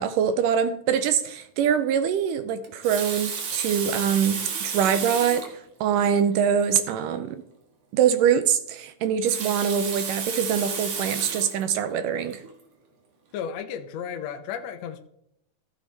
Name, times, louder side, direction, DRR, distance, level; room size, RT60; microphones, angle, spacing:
voice 1, 0.0-5.5 5.8-7.4 7.9-12.4, right 8 dB, 75° right, 11 dB, 2.1 m, -24 dB
Water tap faucet, 2.6-5.6 6.3-6.4 6.7-6.8 9.0-11.6 12.3-12.5, right 6 dB, 55° right, 2.2 m, -32 dB
voice 2, 13.3-15.0, left 8 dB, 65° left, 6 dB, 1.8 m, -33 dB
15.0 x 7.4 x 3.4 m, 0.77 s
omnidirectional pair, 4.1 m